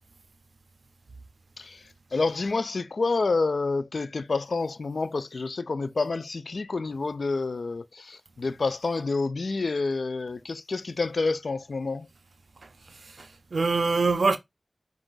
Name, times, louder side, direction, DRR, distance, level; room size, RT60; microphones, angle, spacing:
voice 1, 1.6-12.1, left 3 dB, 90° left, 0.4 m, -28 dB
voice 2, 12.9-14.4, right 4 dB, 90° right, 0.4 m, -25 dB
5.2 x 2.4 x 3.8 m
wide cardioid pair, 65°, 0 cm